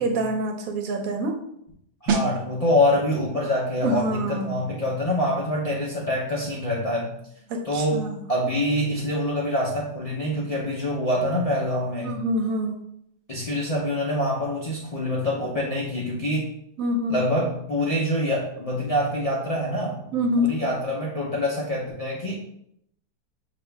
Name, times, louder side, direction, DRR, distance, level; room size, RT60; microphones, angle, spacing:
voice 1, 0.0-1.4 3.8-4.6 7.5-8.2 12.0-12.8 16.8-17.2 20.1-20.6, equal, 65° right, 3 dB, 1.0 m, -26 dB
voice 2, 2.0-7.1 7.6-12.2 13.3-16.5 17.1-22.3, left 1 dB, 50° left, -4 dB, 0.4 m, -25 dB
sound 1, 2.1-12.6 12.9-13.1, right 5 dB, 80° right, 0.6 m, -37 dB
6.1 x 2.4 x 3.4 m, 0.74 s
omnidirectional pair, 1.8 m